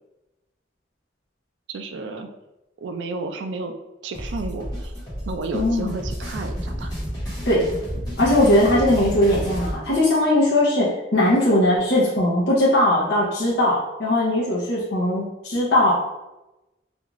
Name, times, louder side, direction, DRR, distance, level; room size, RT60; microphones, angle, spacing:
voice 1, 1.7-2.3 2.8-3.7 4.0-4.9 5.3-6.9, right 3 dB, 70° right, 7 dB, 0.3 m, -31 dB
sound 1, 4.1-9.8, equal, 20° left, 1.0 m, -30 dB
voice 2, 5.5-5.9 7.5-7.7 8.2-15.9, left 1 dB, 60° left, -7 dB, 0.6 m, -19 dB
2.5 x 2.3 x 2.9 m, 0.98 s
head